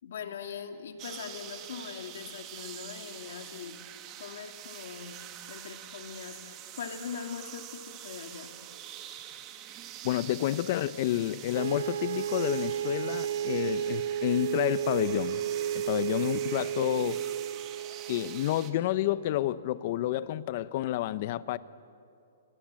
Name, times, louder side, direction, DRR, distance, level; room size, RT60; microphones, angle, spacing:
voice 1, 0.0-3.8 4.2-8.5, left 7 dB, 65° left, 5 dB, 2.6 m, -41 dB
sound 1, 1.0-18.7, right 11 dB, 25° right, 1.7 m, -45 dB
voice 2, 10.0-15.4 15.7-17.2 18.1-21.6, left 13 dB, 40° left, 16 dB, 0.8 m, -29 dB
sound 2, 11.5-19.3, right 9 dB, 65° right, 1.3 m, -33 dB
27.0 x 25.5 x 7.6 m, 2.5 s
hypercardioid pair, 160°, 0 cm